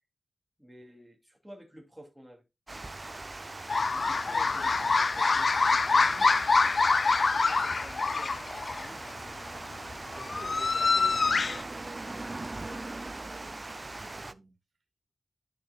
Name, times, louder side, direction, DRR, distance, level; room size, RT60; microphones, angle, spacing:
voice 1, 0.6-2.4 3.8-6.4 7.2-9.3, equal, 5° right, 2.5 m, -51 dB
Water, 2.7-14.3, right 2 dB, 30° right, 0.4 m, -41 dB
sound 1, 3.7-8.9 9.9-11.6, left 4 dB, 55° left, 0.4 m, -25 dB
voice 2, 10.1-14.5, right 3 dB, 65° right, 2.5 m, -50 dB
10.5 x 6.6 x 2.2 m
wide cardioid pair, 115°, 0 cm